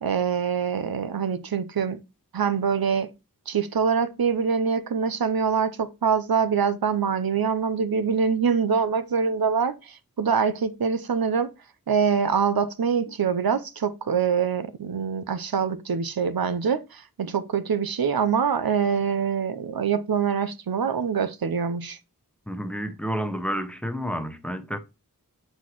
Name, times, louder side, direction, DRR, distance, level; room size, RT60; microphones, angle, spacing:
voice 1, 0.0-2.0 2.3-3.1 3.5-11.5 11.9-22.0, right 6 dB, 90° right, 0.7 m, -24 dB
voice 2, 22.5-24.8, equal, 5° left, 0.9 m, -30 dB
8.0 x 4.2 x 3.0 m
wide cardioid pair, 60°, 35 cm